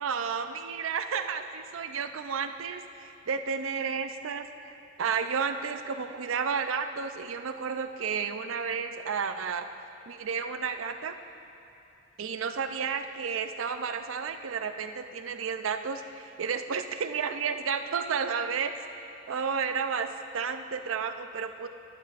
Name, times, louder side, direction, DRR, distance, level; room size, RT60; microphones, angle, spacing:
voice 1, 0.0-9.7 10.1-11.1 12.2-18.7 19.3-20.1 20.3-21.7, right 6 dB, 90° right, 8 dB, 0.5 m, -32 dB
12.0 x 12.0 x 2.5 m, 2.9 s
head